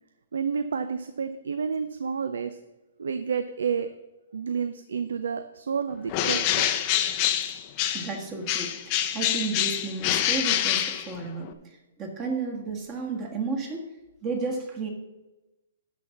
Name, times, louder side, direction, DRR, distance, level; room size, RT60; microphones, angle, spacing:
voice 1, 0.3-2.6 3.0-3.9 4.3-6.7, right 6 dB, 85° right, 10 dB, 0.6 m, -30 dB
Bird, 6.1-8.2 8.5-11.5, left 11 dB, 25° left, 0.6 m, -26 dB
voice 2, 7.9-11.7 12.0-13.9 14.2-14.9, right 4 dB, 20° right, 3 dB, 1.4 m, -32 dB
11.5 x 4.1 x 7.0 m, 1.0 s
hypercardioid pair, 165°, 0 cm